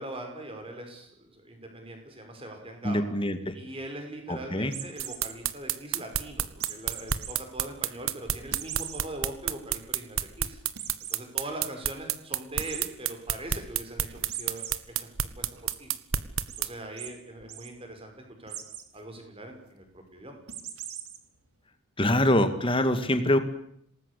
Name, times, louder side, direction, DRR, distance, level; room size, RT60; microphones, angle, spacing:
voice 1, 0.0-3.1 3.5-10.6 11.1-15.5 15.8-15.9 16.6-18.6 18.9-20.4, right 1 dB, 25° right, 4 dB, 5.7 m, -41 dB
voice 2, 2.8-3.5 4.3-4.7 22.0-23.4, left 1 dB, 25° left, 9 dB, 2.1 m, -24 dB
sound 1, 4.7-5.3 6.6-7.3 7.8-7.9 8.5-9.0 9.5-9.6 9.9-10.0 10.8-11.2 12.6-12.8 14.3-14.7 15.2-15.8 16.5-16.6 17.0-17.1 17.4-17.7 18.5-18.9 20.5-21.2, right 10 dB, 85° right, 3.5 m, -39 dB
sound 2, 5.0-16.7, right 10 dB, 65° right, 1.3 m, -29 dB
27.5 x 19.5 x 8.5 m, 0.72 s
head